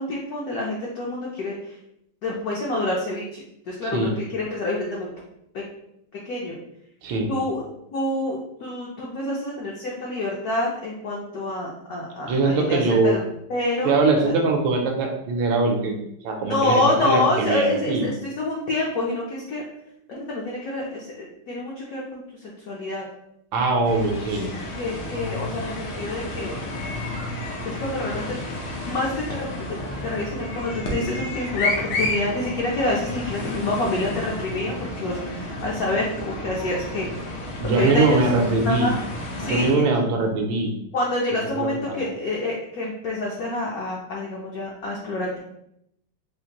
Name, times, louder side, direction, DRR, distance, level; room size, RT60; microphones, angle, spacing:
voice 1, 0.0-1.8 2.2-5.1 5.5-5.6 6.1-6.6 7.3-7.6 7.9-13.2 13.5-14.0 14.2-14.3 16.4-19.6 20.1-23.1 24.8-26.5 27.6-28.3 28.8-29.8 30.0-37.1 37.7-38.2 38.6-39.0 39.4-39.8 40.9-45.4, left 2 dB, 70° left, -3 dB, 0.8 m, -27 dB
voice 2, 3.8-4.2 7.0-7.3 12.3-13.2 13.8-18.1 23.5-24.5 37.6-38.9 39.4-40.7 41.6-42.0, right 3 dB, 80° right, 2 dB, 1.3 m, -22 dB
sound 1, 23.8-39.7, left 2 dB, 90° left, 1.7 m, -31 dB
4.3 x 2.5 x 2.8 m, 0.79 s
omnidirectional pair, 2.2 m